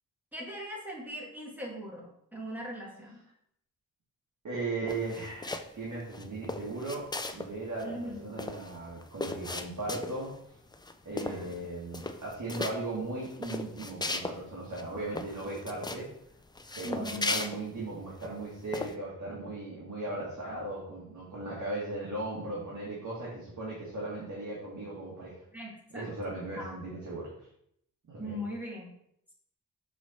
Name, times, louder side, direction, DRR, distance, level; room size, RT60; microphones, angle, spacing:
voice 1, 0.3-3.2 7.8-8.3 11.1-11.5 16.8-17.3 25.5-26.1 26.6-26.8 28.2-28.9, equal, 5° right, -4 dB, 1.9 m, -40 dB
voice 2, 4.4-10.6 11.1-16.1 16.8-25.4 25.9-27.3 28.1-28.4, right 2 dB, 55° right, -6 dB, 1.8 m, -37 dB
sound 1, 4.9-5.8 6.1-7.5 7.8-7.9 8.1-10.3 10.7-10.9 11.2-11.6 11.9-12.7 13.2-14.4 14.7-14.8 15.1-16.0 16.5-18.3 18.7-18.9, left 2 dB, 15° left, 0.4 m, -37 dB
6.3 x 4.1 x 4.3 m, 0.72 s
wide cardioid pair, 120°, 35 cm